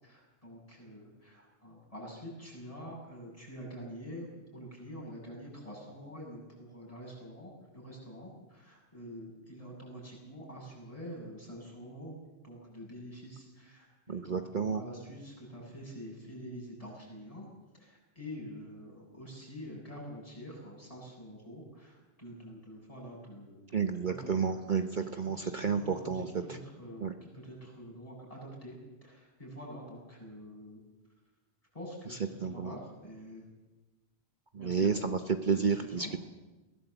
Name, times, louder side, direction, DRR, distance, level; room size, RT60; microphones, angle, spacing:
voice 1, 0.0-4.3 4.5-12.1 12.4-17.5 17.8-24.5 25.3-28.8 29.0-30.8 31.7-33.4 34.6-35.1 35.5-36.1, equal, 30° left, -2 dB, 8.2 m, -46 dB
voice 2, 14.1-14.8 23.7-26.6 27.0-27.1 32.1-32.8 34.5-36.2, right 6 dB, 45° right, 7 dB, 1.1 m, -31 dB
22.0 x 17.5 x 8.1 m, 1.1 s
omnidirectional pair, 1.2 m